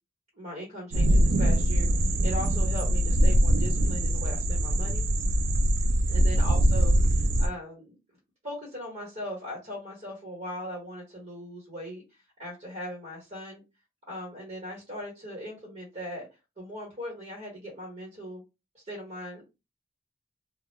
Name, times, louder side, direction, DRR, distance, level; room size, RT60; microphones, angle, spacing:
voice 1, 0.3-5.1 6.1-8.0 8.4-13.6 14.1-16.3 16.6-18.4 18.7-19.4, equal, 35° right, -3 dB, 1.1 m, -39 dB
sound 1, 0.9-7.5, right 1 dB, 80° right, 0.4 m, -23 dB
2.3 x 2.0 x 3.1 m, 0.26 s
head